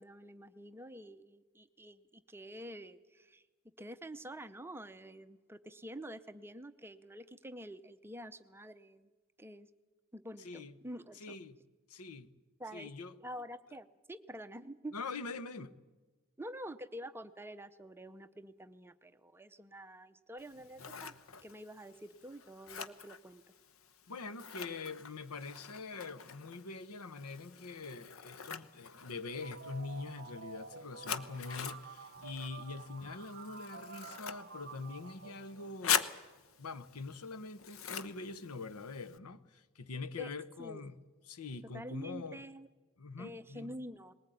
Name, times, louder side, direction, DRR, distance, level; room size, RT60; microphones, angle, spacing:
voice 1, 0.0-3.4 3.8-9.1 9.4-9.7 10.1-11.4 12.6-12.9 13.2-14.9 16.4-21.1 21.4-23.4 40.2-40.3 40.6-40.8 41.7-42.7 43.2-44.1, equal, 10° right, 0.6 m, -47 dB
voice 2, 10.4-10.7 11.1-11.6 11.9-12.3 12.7-13.2 14.9-15.7 24.1-36.0 36.6-40.9 41.3-42.4 43.0-43.7, left 4 dB, 90° left, 0.9 m, -44 dB
Scissors, 20.4-39.2, left 8 dB, 65° left, 0.9 m, -43 dB
sound 1, 29.2-36.0, right 5 dB, 50° right, 0.8 m, -51 dB
20.0 x 18.5 x 9.2 m
head